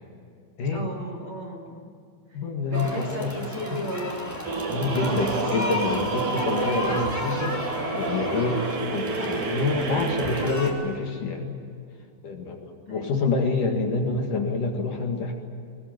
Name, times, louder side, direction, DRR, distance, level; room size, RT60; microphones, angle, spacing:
voice 1, 0.7-1.9 2.3-2.4 2.7-4.4 12.9-13.2, right 1 dB, 35° right, 1 dB, 3.0 m, -35 dB
voice 2, 2.3-3.3 4.7-7.6 7.9-8.7 8.9-11.6 12.2-15.3, left 3 dB, 55° left, 2 dB, 3.1 m, -27 dB
sound 1, 2.7-10.7, left 1 dB, 5° left, 3.6 m, -33 dB
sound 2, 4.4-10.5, right 4 dB, 50° right, 1.7 m, -29 dB
22.5 x 22.0 x 9.5 m, 2.5 s
omnidirectional pair, 5.0 m